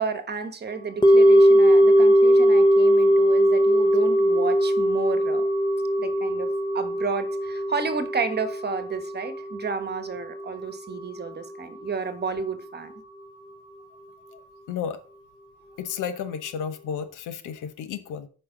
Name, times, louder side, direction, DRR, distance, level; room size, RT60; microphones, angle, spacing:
voice 1, 0.0-5.4 6.0-6.5 6.7-12.9, right 5 dB, 35° right, 1.2 m, -31 dB
sound 1, 1.0-11.3 11.6-11.7, equal, 15° left, 0.9 m, -20 dB
voice 2, 14.7-15.0 15.8-18.3, left 7 dB, 85° left, 1.0 m, -32 dB
8.7 x 5.5 x 3.9 m
cardioid pair, 90°, 30 cm